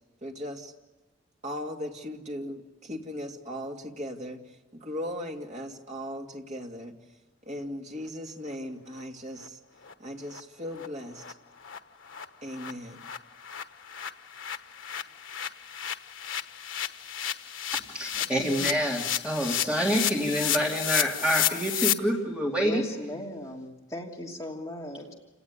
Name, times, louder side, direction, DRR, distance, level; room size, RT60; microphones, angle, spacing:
voice 1, 0.2-0.7 1.4-6.9 7.4-9.6 10.0-11.2 12.4-13.0, equal, 35° right, 1 dB, 2.7 m, -38 dB
sound 1, 9.0-9.1 9.4-9.5 9.8-9.9 10.3-10.4 10.7-10.9 11.2-11.3 11.6-11.8 12.0-21.9, left 11 dB, 80° left, 1.3 m, -32 dB
voice 2, 17.9-22.8, equal, 5° right, -2 dB, 2.4 m, -27 dB
voice 3, 22.5-25.1, left 1 dB, 15° left, -2 dB, 3.1 m, -38 dB
29.0 x 18.5 x 9.8 m, 1.2 s
head